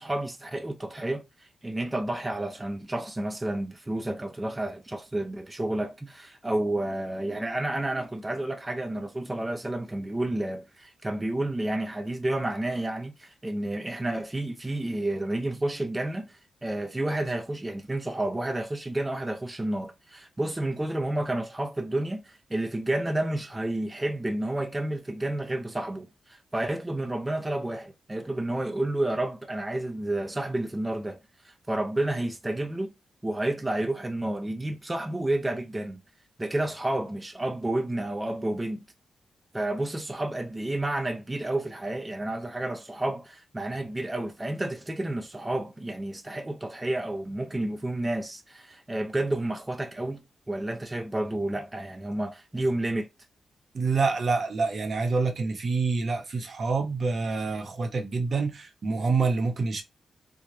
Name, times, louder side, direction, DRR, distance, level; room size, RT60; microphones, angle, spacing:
voice 1, 0.0-32.9 33.2-36.0 36.4-38.8 39.5-50.2 50.5-53.1, right 1 dB, 20° right, 0.6 m, -30 dB
voice 2, 53.7-59.8, right 4 dB, 55° right, 0.9 m, -27 dB
3.1 x 2.3 x 3.8 m
cardioid pair, 65°, 0 cm